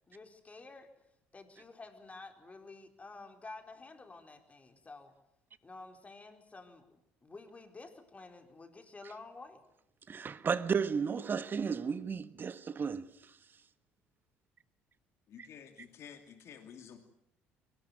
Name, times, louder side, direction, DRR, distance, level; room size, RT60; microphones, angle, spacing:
voice 1, 0.1-1.1 1.3-5.1 5.6-9.6, left 3 dB, 25° left, 4.4 m, -51 dB
voice 2, 10.1-13.1, right 6 dB, 40° right, 1.4 m, -33 dB
voice 3, 15.3-17.0, left 8 dB, 55° left, 2.6 m, -51 dB
23.0 x 19.0 x 9.5 m
hypercardioid pair, 65°, 6 cm